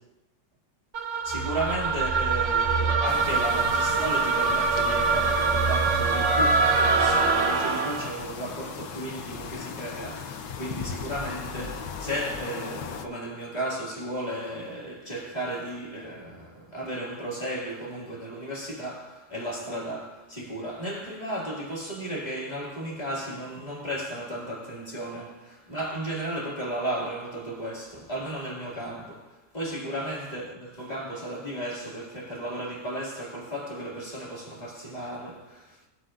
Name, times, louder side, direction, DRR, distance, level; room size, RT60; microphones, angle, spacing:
sound 1, 0.9-8.2, right 4 dB, 50° right, 1.0 m, -24 dB
voice 1, 1.2-35.8, right 1 dB, 25° left, 2.3 m, -34 dB
sound 2, 1.3-7.8, right 4 dB, 5° right, 0.4 m, -33 dB
sound 3, 3.1-13.1, left 6 dB, 80° left, 1.4 m, -38 dB
19.0 x 8.0 x 2.5 m
omnidirectional pair, 1.9 m